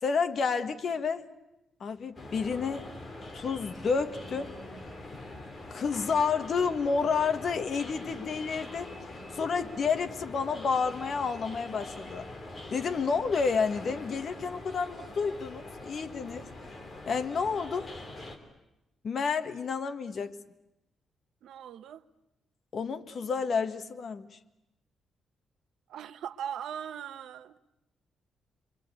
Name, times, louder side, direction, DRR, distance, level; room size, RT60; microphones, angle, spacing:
voice 1, 0.0-1.2 1.8-2.9 3.3-4.5 5.7-8.9 9.3-12.3 12.7-16.5 17.1-17.9 19.0-20.3 22.7-24.4, left 5 dB, 45° left, 1.5 m, -30 dB
sound 1, 2.1-18.4, left 2 dB, 25° left, 3.2 m, -44 dB
voice 2, 21.4-22.1 25.9-27.6, right 9 dB, 80° right, 1.0 m, -39 dB
27.5 x 24.0 x 8.4 m
cardioid pair, 140°, 0 cm